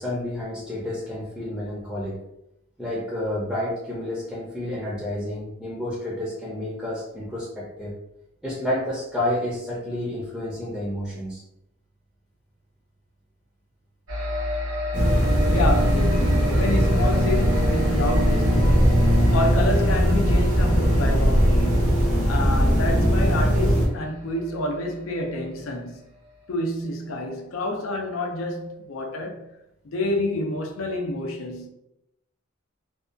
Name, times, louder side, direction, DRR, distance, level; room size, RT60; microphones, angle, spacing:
voice 1, 0.0-2.2 2.8-7.9 8.4-11.4, left 1 dB, ahead, 0.5 m, -30 dB
sound 1, 14.1-25.9, left 2 dB, 80° right, 0.9 m, -33 dB
sound 2, 14.9-23.9, equal, 40° right, 0.7 m, -19 dB
voice 2, 15.5-21.9 22.3-26.0 26.5-29.5 29.8-31.7, left 2 dB, 70° left, 0.4 m, -29 dB
2.6 x 2.3 x 2.4 m
head